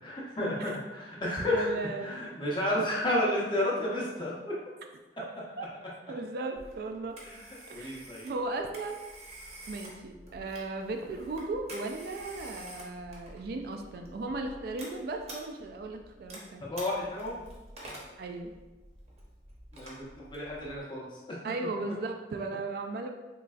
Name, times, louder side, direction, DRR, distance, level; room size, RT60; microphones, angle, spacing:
voice 1, 0.0-1.7 2.0-4.5 7.2-7.4 7.7-8.3 16.6-17.4 19.7-21.4, left 1 dB, 25° left, -5 dB, 0.8 m, -31 dB
voice 2, 1.5-2.4 5.2-5.3 5.6-5.7 6.1-7.1 7.7-9.0 9.7-16.7 18.2-18.5 21.4-23.1, right 3 dB, 60° right, 4 dB, 0.3 m, -36 dB
Telephone, 6.6-20.8, right 1 dB, 40° right, 0.7 m, -49 dB
3.8 x 3.2 x 2.3 m, 1.1 s
head